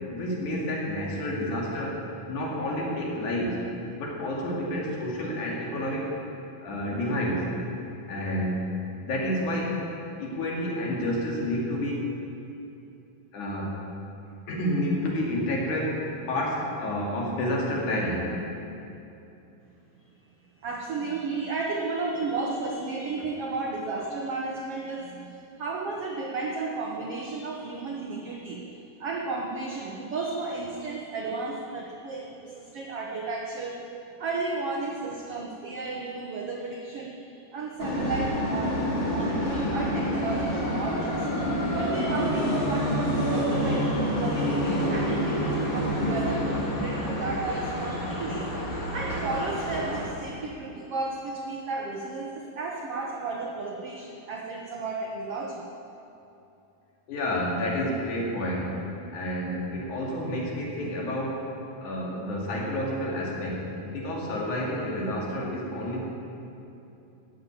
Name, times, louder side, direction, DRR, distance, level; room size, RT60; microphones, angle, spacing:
voice 1, 0.1-2.0 2.3-3.6 4.0-6.1 6.6-7.5 8.1-8.7 9.0-9.8 10.2-12.1 13.3-13.8 14.5-18.4 57.1-58.8 59.1-61.5 61.8-66.1, left 1 dB, 55° left, -2 dB, 3.6 m, -29 dB
voice 2, 20.6-28.6 29.0-33.8 34.2-38.8 39.1-43.9 44.2-48.5 48.9-55.6, right 3 dB, 75° right, 0 dB, 1.3 m, -33 dB
sound 1, 37.8-50.0, equal, 35° left, 3.8 m, -28 dB
12.5 x 9.4 x 8.8 m, 2.8 s
omnidirectional pair, 4.3 m